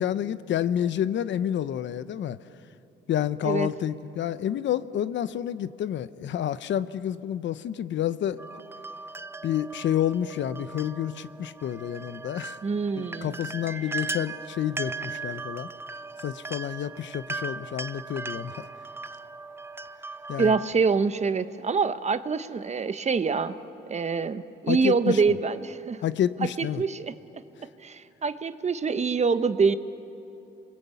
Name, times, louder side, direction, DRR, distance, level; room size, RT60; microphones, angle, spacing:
voice 1, 0.0-2.4 3.1-8.4 9.4-12.6 13.0-15.7 16.2-18.7 20.3-20.5 24.7-25.2 26.0-26.8, left 10 dB, 70° left, 14 dB, 0.8 m, -29 dB
sound 1, 8.4-20.7, right 3 dB, 10° right, 0.6 m, -38 dB
voice 2, 12.6-13.4 20.4-23.6 23.9-26.0 26.6-27.4 27.8-29.8, right 5 dB, 35° right, 11 dB, 1.1 m, -25 dB
29.5 x 22.0 x 8.4 m, 2.9 s
cardioid pair, 90°, 20 cm